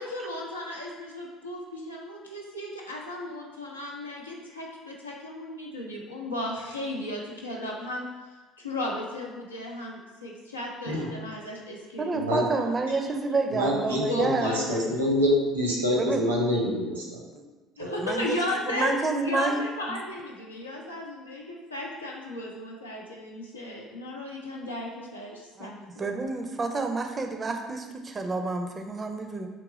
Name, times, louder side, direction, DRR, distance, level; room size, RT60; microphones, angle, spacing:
voice 1, 0.0-8.1 8.6-12.3 14.1-14.9 17.8-18.9 19.2-25.8, left 1 dB, 90° left, -3 dB, 0.6 m, -35 dB
voice 2, 12.0-14.5 16.0-16.2 17.4-17.5 18.0-19.6 25.6-29.5, right 3 dB, 30° right, 5 dB, 0.5 m, -29 dB
voice 3, 13.5-17.0 17.8-17.9, left 1 dB, 85° right, -3 dB, 0.9 m, -26 dB
3.7 x 2.9 x 3.7 m, 1.2 s
figure-of-eight pair, 60°, 0 cm